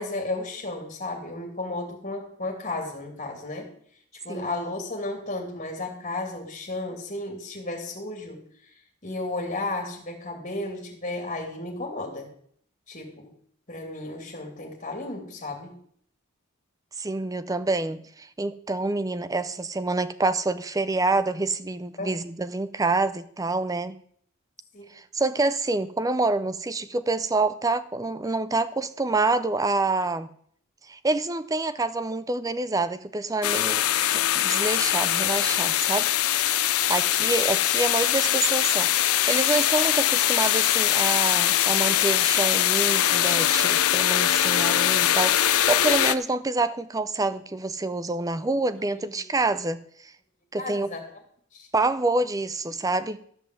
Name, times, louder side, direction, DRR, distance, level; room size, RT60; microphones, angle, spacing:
voice 1, 0.0-3.7 4.2-8.4 9.0-12.3 12.9-13.3 13.7-15.8 22.0-22.1 24.7-24.9 48.8-49.3 50.6-51.0 51.5-51.7, left 2 dB, 35° left, 1 dB, 2.7 m, -33 dB
voice 2, 17.0-24.0 24.9-30.3 30.9-36.1 36.9-50.1 50.5-50.9 51.7-53.2, right 3 dB, 15° right, 13 dB, 0.5 m, -27 dB
sound 1, 33.4-46.2, left 12 dB, 80° left, 0.6 m, -22 dB
13.5 x 5.5 x 7.8 m, 0.62 s
head